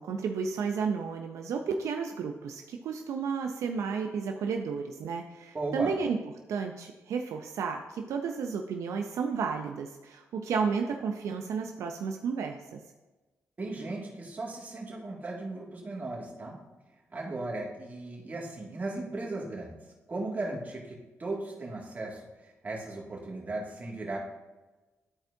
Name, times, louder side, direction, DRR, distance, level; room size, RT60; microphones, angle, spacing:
voice 1, 0.0-6.2 6.5-12.8, right 5 dB, 85° right, 4 dB, 0.5 m, -32 dB
voice 2, 5.5-6.0 13.6-16.6 17.1-19.7 20.1-24.2, right 2 dB, 35° right, -3 dB, 2.1 m, -36 dB
12.0 x 4.4 x 2.7 m, 1.2 s
cardioid pair, 85°, 5 cm